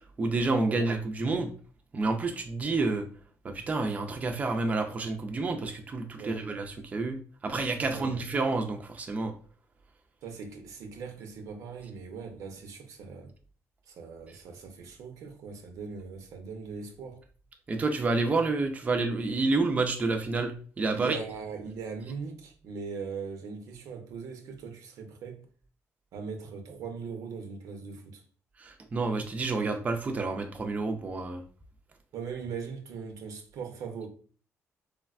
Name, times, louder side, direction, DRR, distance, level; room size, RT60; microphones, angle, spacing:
voice 1, 0.2-1.5 1.9-3.1 3.4-9.3 17.7-21.2 28.6-31.4, right 3 dB, 25° right, 0.4 m, -29 dB
voice 2, 7.8-8.2 10.2-13.3 13.9-17.2 20.9-25.5 26.1-28.2 32.1-34.1, right 5 dB, 85° right, 0.6 m, -40 dB
3.3 x 2.2 x 2.3 m
cardioid pair, 120°, 6 cm